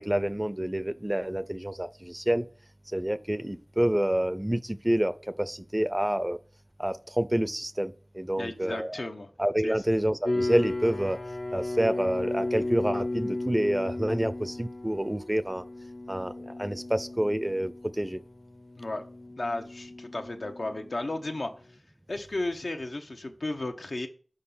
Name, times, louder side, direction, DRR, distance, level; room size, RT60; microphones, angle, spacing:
voice 1, 0.0-2.4 2.9-6.4 6.8-9.1 9.4-11.2 11.5-15.6 16.1-18.2, right 1 dB, 20° right, 0.5 m, -28 dB
voice 2, 8.4-9.3 9.6-9.8 18.8-19.0 19.4-21.5 22.1-24.1, left 2 dB, 75° left, 1.2 m, -34 dB
sound 1, 10.2-21.3, left 2 dB, 60° left, 0.8 m, -35 dB
6.4 x 5.2 x 5.7 m
wide cardioid pair, 45°, 0 cm